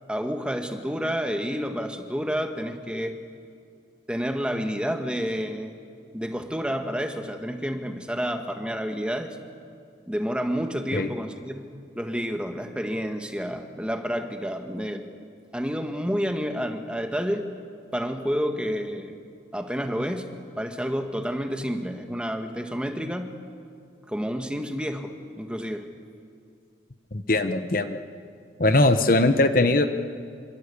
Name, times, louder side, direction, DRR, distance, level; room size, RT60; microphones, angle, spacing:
voice 1, 0.1-3.2 4.1-5.7 6.1-9.4 10.0-15.1 15.5-17.5 17.9-19.2 19.5-20.3 20.6-23.3 24.1-25.9, equal, 5° right, 5 dB, 1.5 m, -29 dB
voice 2, 27.1-28.0 28.6-29.9, left 2 dB, 45° left, 9 dB, 1.0 m, -20 dB
27.0 x 26.0 x 8.4 m, 2.3 s
head